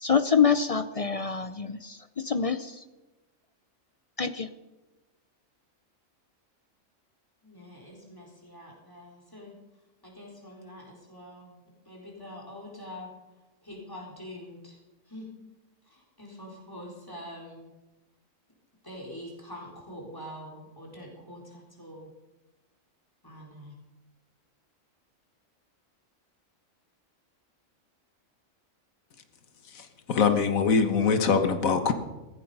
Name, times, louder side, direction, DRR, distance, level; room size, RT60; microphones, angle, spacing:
voice 1, 0.0-2.8 4.2-4.5, left 6 dB, 50° left, 11 dB, 0.4 m, -26 dB
voice 2, 7.4-9.6 10.0-13.1 13.6-14.8 15.1-15.3 15.8-17.7 18.8-22.1 23.2-23.7, left 1 dB, 15° left, -2 dB, 4.1 m, -45 dB
voice 3, 29.7-31.9, left 5 dB, 90° left, 8 dB, 1.6 m, -23 dB
16.5 x 14.5 x 5.5 m, 1.1 s
omnidirectional pair, 1.4 m